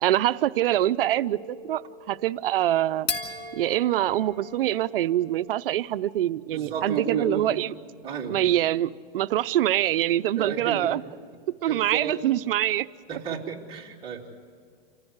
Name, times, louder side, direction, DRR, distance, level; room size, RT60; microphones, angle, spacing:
voice 1, 0.0-1.4 1.6-3.1 3.5-7.7 8.3-11.0 11.6-12.9, right 13 dB, 70° right, 14 dB, 0.7 m, -24 dB
sound 1, 0.9-5.7, left 3 dB, 75° left, 3.0 m, -38 dB
voice 2, 6.5-7.5 8.0-8.4 10.4-10.8 11.7-12.2 13.1-14.4, right 6 dB, 15° right, -3 dB, 2.9 m, -32 dB
28.0 x 15.5 x 8.1 m, 2.2 s
supercardioid pair, 160°, 30 cm